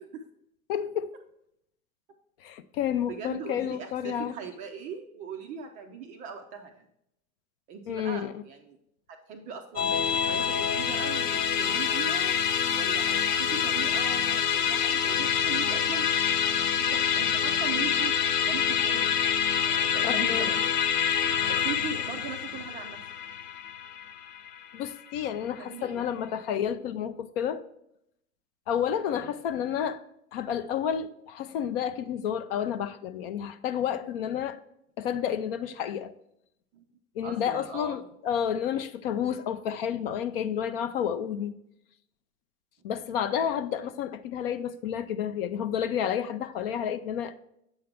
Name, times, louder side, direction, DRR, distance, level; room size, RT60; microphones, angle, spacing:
voice 1, 0.7-1.1 2.4-4.3 7.9-8.4 20.0-20.5 24.7-27.6 28.7-30.0 30.3-34.6 35.0-36.1 37.2-41.5 42.8-47.4, left 9 dB, 40° left, 0.5 m, -30 dB
voice 2, 3.1-6.9 7.7-8.8 9.1-12.3 12.7-16.1 16.8-18.2 18.5-19.1 19.6-20.6 21.5-23.0 25.6-26.1 29.2-29.3 36.7-36.8 37.2-38.0, right 6 dB, 20° right, 0.4 m, -39 dB
Musical instrument, 9.8-25.3, left 7 dB, 90° left, 0.6 m, -26 dB
7.9 x 5.5 x 3.4 m
figure-of-eight pair, 95°, 45 cm